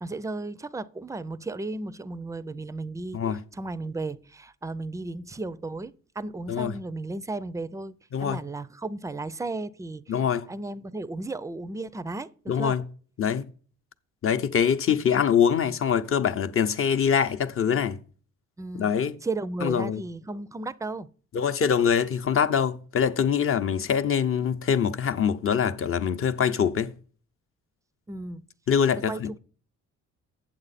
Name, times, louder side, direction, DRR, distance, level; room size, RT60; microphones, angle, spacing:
voice 1, 0.0-7.9 8.2-12.8 18.6-21.1 28.1-28.5 29.1-29.2, right 2 dB, 10° right, 0.4 m, -35 dB
voice 2, 10.1-10.5 12.5-12.8 13.2-13.5 14.2-18.0 18.7-19.1 19.6-20.0 21.3-26.9 28.7-29.4, left 7 dB, 45° left, 0.7 m, -24 dB
8.7 x 7.4 x 4.1 m
cardioid pair, 90°, 30 cm